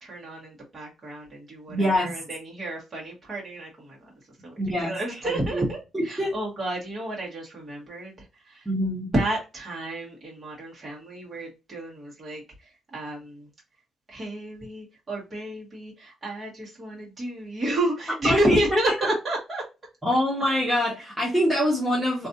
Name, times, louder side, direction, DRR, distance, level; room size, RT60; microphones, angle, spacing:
voice 1, 0.0-4.1 4.4-5.8 6.0-8.6 9.1-13.5 14.1-19.6, right 1 dB, 35° right, -3 dB, 1.7 m, -31 dB
voice 2, 1.7-2.2 4.6-4.9 5.2-5.6 5.9-6.4 8.6-9.1 18.2-18.6 20.0-22.3, equal, 5° right, -7 dB, 1.5 m, -24 dB
3.2 x 2.6 x 2.6 m, 0.27 s
cardioid pair, 90°, 0 cm